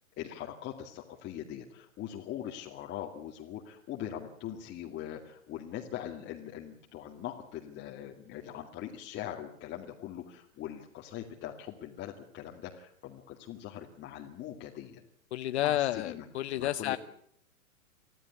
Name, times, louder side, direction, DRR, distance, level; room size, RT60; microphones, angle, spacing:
voice 1, 0.2-15.0 15.6-16.3 16.6-17.0, left 11 dB, 25° left, 0 dB, 2.3 m, -41 dB
voice 2, 15.3-17.0, left 14 dB, 50° left, 12 dB, 1.0 m, -30 dB
25.5 x 15.5 x 8.4 m, 0.67 s
figure-of-eight pair, 115°, 42 cm